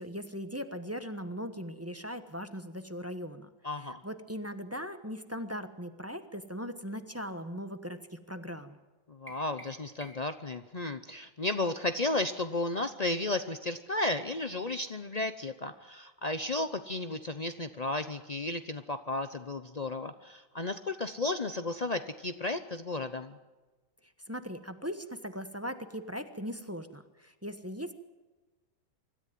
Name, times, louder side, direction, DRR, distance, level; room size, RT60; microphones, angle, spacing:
voice 1, 0.0-8.8 24.0-27.9, equal, 10° right, 9 dB, 0.9 m, -39 dB
voice 2, 3.6-4.0 9.1-23.4, left 2 dB, 80° left, 9 dB, 0.3 m, -33 dB
sound 1, 9.3-10.5, right 1 dB, 5° left, 2.9 m, -51 dB
25.0 x 13.5 x 9.4 m, 1.2 s
omnidirectional pair, 2.1 m